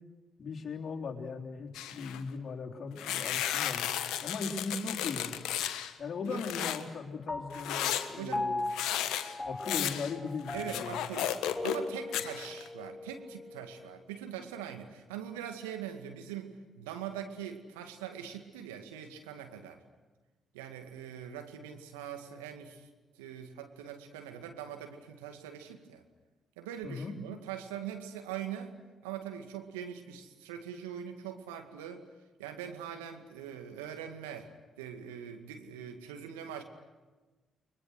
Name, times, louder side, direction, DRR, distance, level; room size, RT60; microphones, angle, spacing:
voice 1, 0.4-3.9 4.2-5.3 6.0-8.7 9.4-11.1 26.8-27.2, left 4 dB, 50° left, 1 dB, 3.7 m, -38 dB
sound 1, 1.7-2.2 3.0-5.9 6.3-6.8 7.5-11.9 12.1-12.7, left 10 dB, 70° left, 1.4 m, -34 dB
Piano, 7.3-14.0, left 2 dB, 20° left, 1.2 m, -40 dB
voice 2, 8.2-8.5 10.5-11.3 11.6-19.8 20.5-22.9 23.1-26.0 26.6-28.7 29.0-32.0 32.4-34.5 34.8-36.6, right 9 dB, 85° right, 5 dB, 2.1 m, -42 dB
30.0 x 23.0 x 6.4 m, 1.2 s
hypercardioid pair, 45°, 0 cm